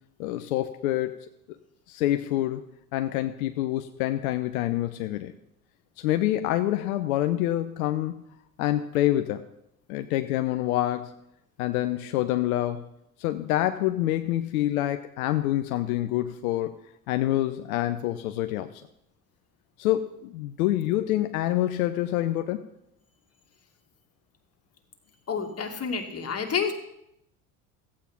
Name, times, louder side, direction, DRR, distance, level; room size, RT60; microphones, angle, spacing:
voice 1, 0.2-1.2 1.9-2.6 2.9-5.3 6.0-8.2 8.6-9.4 9.9-11.1 11.6-12.8 13.2-16.7 17.1-18.8 19.8-22.6, left 14 dB, 80° left, 9 dB, 0.8 m, -26 dB
voice 2, 25.3-26.7, left 6 dB, 35° left, 4 dB, 2.4 m, -29 dB
14.5 x 8.6 x 5.8 m, 0.79 s
hypercardioid pair, 75°, 42 cm